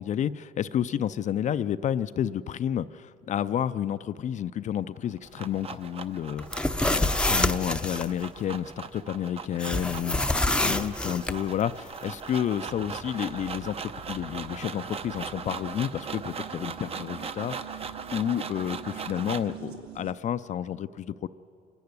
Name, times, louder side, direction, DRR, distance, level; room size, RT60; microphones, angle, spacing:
voice 1, 0.0-10.2 10.6-17.6 18.1-21.3, left 10 dB, 45° left, 13 dB, 0.5 m, -30 dB
sound 1, 5.0-19.6, right 6 dB, 35° right, 0.8 m, -39 dB
sound 2, 6.4-8.1 9.6-11.4, left 2 dB, 5° left, 0.6 m, -26 dB
sound 3, 12.6-20.1, right 8 dB, 70° right, 2.2 m, -45 dB
27.5 x 12.0 x 9.6 m, 2.8 s
cardioid pair, 110°, 17 cm